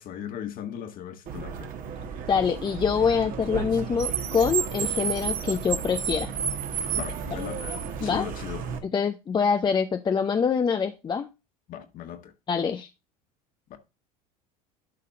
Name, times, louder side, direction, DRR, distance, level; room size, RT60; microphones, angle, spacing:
voice 1, 0.0-1.7 6.9-7.7 8.0-8.6 11.7-12.3 13.7-13.8, left 9 dB, 45° left, 1.6 m, -37 dB
Car, 1.3-8.8, right 7 dB, 45° right, 1.5 m, -32 dB
voice 2, 2.3-6.3 8.0-8.3 8.9-11.3 12.5-12.9, left 6 dB, 25° left, 0.6 m, -25 dB
11.5 x 4.1 x 3.7 m
hypercardioid pair, 80°, 19 cm